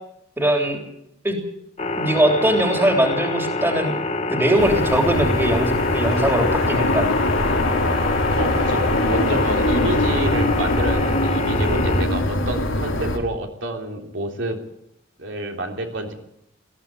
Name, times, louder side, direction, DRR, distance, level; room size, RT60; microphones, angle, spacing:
voice 1, 0.4-0.8 1.2-1.4 2.0-3.9 4.3-7.1, right 1 dB, 10° right, 4 dB, 3.4 m, -20 dB
sound 1, 1.8-12.0, left 2 dB, 35° left, 1.8 m, -26 dB
sound 2, 4.6-13.2, left 1 dB, 85° left, 3.8 m, -22 dB
voice 2, 8.4-14.6 15.2-16.1, right 1 dB, 70° right, 3 dB, 3.4 m, -28 dB
19.5 x 15.0 x 9.0 m, 0.74 s
head